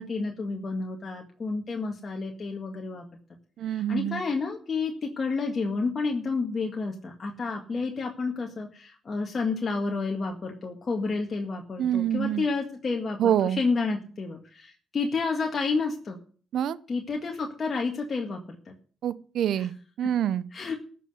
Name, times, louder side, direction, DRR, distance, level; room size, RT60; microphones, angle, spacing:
voice 1, 0.0-3.0 3.6-16.2 16.9-18.7 19.6-19.7 20.0-20.1 20.5-20.7, left 4 dB, 40° left, 1 dB, 1.9 m, -30 dB
voice 2, 3.6-4.2 11.8-12.5 13.2-13.6 16.5-16.8 19.0-20.5, right 10 dB, 70° right, 16 dB, 0.8 m, -26 dB
14.0 x 6.0 x 8.0 m, 0.43 s
cardioid pair, 90°, 0 cm